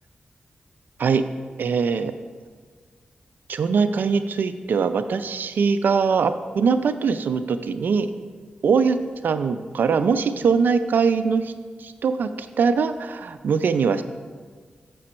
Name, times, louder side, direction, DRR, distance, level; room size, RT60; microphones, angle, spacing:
voice 1, 1.6-2.1 3.5-8.1 8.6-11.5 11.8-14.0, right 5 dB, 80° right, 10 dB, 0.4 m, -22 dB
6.8 x 6.3 x 4.4 m, 1.5 s
cardioid pair, 65°, 3 cm